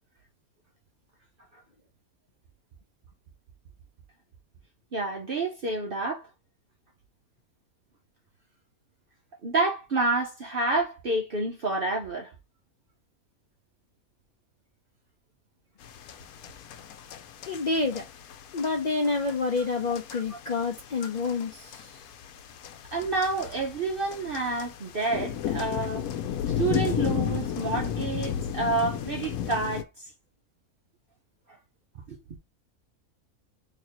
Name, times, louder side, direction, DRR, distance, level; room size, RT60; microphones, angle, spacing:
voice 1, 4.9-6.3 9.4-12.3 21.0-21.1 22.9-26.1 26.5-30.1 32.0-32.2, right 3 dB, 50° right, 0.8 m, -29 dB
sound 1, 15.8-29.8, left 9 dB, 85° left, 1.1 m, -34 dB
voice 2, 17.5-18.1 18.5-22.0, left 3 dB, 60° left, 0.4 m, -28 dB
4.0 x 2.9 x 2.9 m
omnidirectional pair, 1.5 m